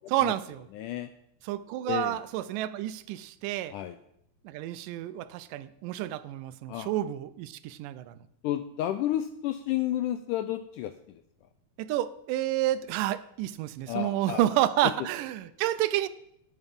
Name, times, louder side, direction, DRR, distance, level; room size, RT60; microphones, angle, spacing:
voice 1, 0.1-0.6 1.5-3.7 4.4-8.2 11.8-16.1, right 13 dB, 80° right, 13 dB, 2.1 m, -29 dB
voice 2, 0.7-1.1 1.9-2.2 3.7-4.0 6.7-6.9 8.4-11.2 13.9-14.4 14.8-14.9, left 12 dB, 85° left, 9 dB, 1.8 m, -31 dB
10.5 x 9.6 x 5.3 m, 0.76 s
omnidirectional pair, 4.1 m